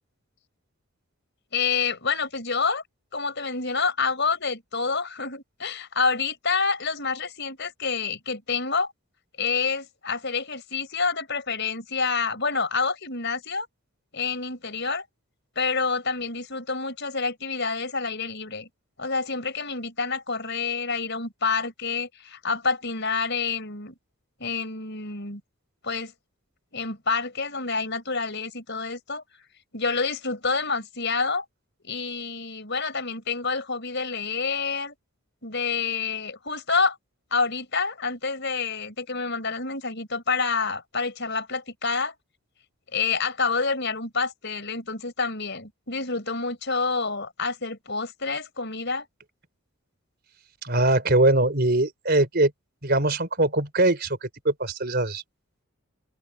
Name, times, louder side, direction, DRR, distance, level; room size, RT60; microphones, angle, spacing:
voice 1, 1.5-2.8 3.1-8.9 9.4-13.7 14.1-15.0 15.6-18.7 19.0-23.9 24.4-25.4 25.8-26.1 26.7-29.2 29.7-31.4 31.8-34.9 35.4-37.0 37.3-42.2 42.9-49.1, left 4 dB, 50° left, 5.6 m, -28 dB
voice 2, 50.6-52.5 52.8-55.2, right 2 dB, 45° right, 4.2 m, -22 dB
open air
head